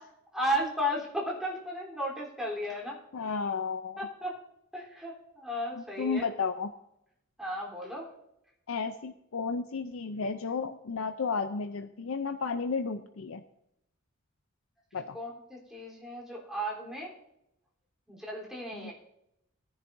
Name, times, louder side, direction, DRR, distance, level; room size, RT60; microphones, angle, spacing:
voice 1, 0.3-3.0 4.0-4.4 4.7-6.3 7.4-8.1 15.1-17.1 18.1-18.9, equal, ahead, -3 dB, 3.5 m, -34 dB
voice 2, 3.1-4.0 5.8-6.7 8.7-13.4 14.9-15.2 18.7-18.9, left 5 dB, 70° left, 8 dB, 0.6 m, -33 dB
18.5 x 10.5 x 2.7 m, 0.81 s
head